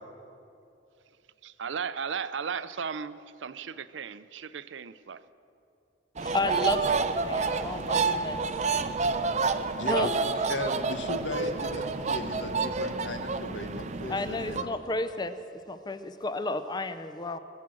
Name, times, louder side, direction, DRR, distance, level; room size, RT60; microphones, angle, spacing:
voice 1, 1.4-5.2, right 6 dB, 80° right, 14 dB, 0.5 m, -36 dB
voice 2, 6.2-8.4 9.9-10.3 14.1-15.4 15.7-17.4, left 2 dB, 25° left, 11 dB, 0.5 m, -32 dB
sound 1, 6.2-14.6, right 4 dB, 40° right, 0.6 m, -29 dB
voice 3, 9.8-14.7, left 1 dB, 80° left, 6 dB, 1.4 m, -37 dB
21.0 x 7.4 x 7.7 m, 2.6 s
head